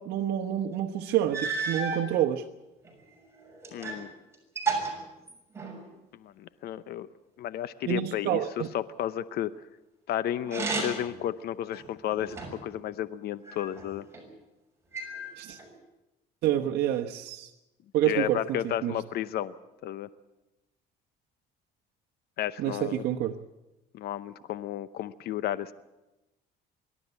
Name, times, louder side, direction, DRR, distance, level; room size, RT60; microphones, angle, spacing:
voice 1, 0.0-2.4 7.9-8.7 15.4-15.6 16.4-17.5 17.9-19.0 22.6-23.4, right 11 dB, 75° right, 0 dB, 1.1 m, -28 dB
sound 1, 0.7-0.8 1.3-2.1 2.8-4.1 4.3-5.9 10.4-11.2 11.7-12.7 13.4-14.2 14.9-15.7, right 4 dB, 15° right, 6.6 m, -33 dB
voice 2, 3.7-4.1 6.1-7.1 7.4-9.5 10.1-12.4 12.6-14.0 18.1-19.5 19.8-20.1 22.4-23.0 23.9-25.7, left 11 dB, 70° left, 15 dB, 0.8 m, -32 dB
24.5 x 12.5 x 9.6 m, 0.99 s
cardioid pair, 110°, 17 cm